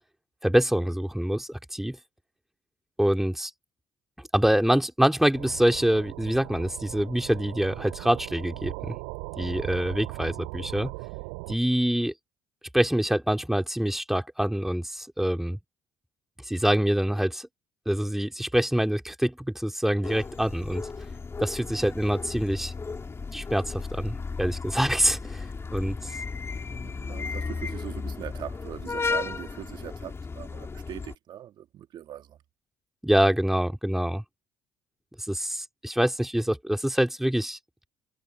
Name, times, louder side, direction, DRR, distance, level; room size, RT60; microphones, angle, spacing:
voice 1, 0.4-2.0 3.0-3.5 4.3-9.0 9.4-10.9 11.5-12.1 12.7-15.6 16.5-17.5 17.9-20.8 21.4-22.7 23.3-25.5 25.7-26.1 33.0-34.2 35.3-37.6, equal, 5° right, 3.6 m, -25 dB
sound 1, 5.3-11.6, right 37 dB, 70° right, 5.0 m, -39 dB
sound 2, 20.0-31.1, left 4 dB, 25° left, 4.4 m, -35 dB
voice 2, 26.7-32.4, right 11 dB, 50° right, 1.9 m, -41 dB
hypercardioid pair, 55°, 10 cm